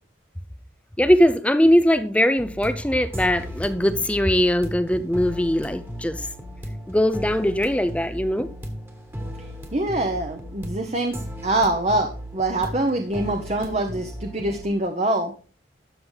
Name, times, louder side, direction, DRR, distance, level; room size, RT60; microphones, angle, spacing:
voice 1, 1.0-6.3 6.9-8.5, equal, 5° left, 0.5 m, -20 dB
sound 1, 2.4-14.6, equal, 15° right, 1.6 m, -36 dB
voice 2, 9.7-11.2 11.4-15.3, right 2 dB, 35° right, 1.0 m, -24 dB
13.0 x 7.7 x 4.0 m
head